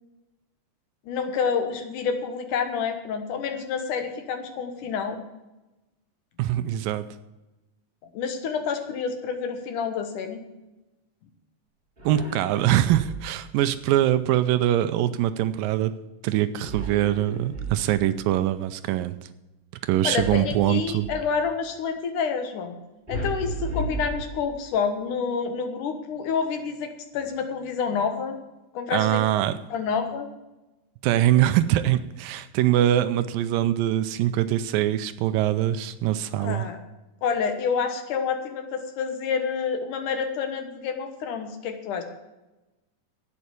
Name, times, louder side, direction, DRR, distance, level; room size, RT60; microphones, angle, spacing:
voice 1, 1.1-5.2 8.1-10.4 20.0-22.8 23.1-28.4 28.7-29.2 29.7-30.3 36.4-36.8 37.2-42.0, left 6 dB, 65° left, 6 dB, 2.6 m, -28 dB
voice 2, 6.4-7.1 12.0-16.0 16.2-19.2 19.8-21.1 28.9-29.6 31.0-36.7, right 12 dB, 80° right, 12 dB, 2.2 m, -23 dB
sound 1, 12.0-13.5 16.6-18.2 20.1-21.4 23.1-24.8, right 1 dB, 15° right, 3.0 m, -34 dB
11.5 x 8.6 x 8.2 m, 1.0 s
omnidirectional pair, 4.2 m